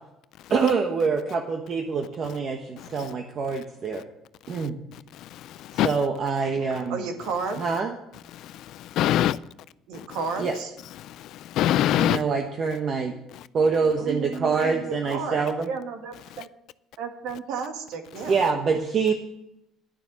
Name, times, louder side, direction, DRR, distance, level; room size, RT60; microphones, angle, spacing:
voice 1, 0.5-4.0 4.5-4.7 5.7-7.0 7.6-7.9 10.4-10.5 12.0-13.1 13.5-15.7 18.3-19.1, right 5 dB, 40° right, 1.2 m, -25 dB
voice 2, 5.2-5.9 8.3-9.4 10.0-10.1 11.0-12.2, left 12 dB, 60° left, 0.3 m, -25 dB
voice 3, 6.9-7.6 9.9-10.7 14.0-16.5 17.0-18.4, right 5 dB, 75° right, 2.0 m, -33 dB
11.0 x 6.9 x 8.2 m
cardioid pair, 135°, 0 cm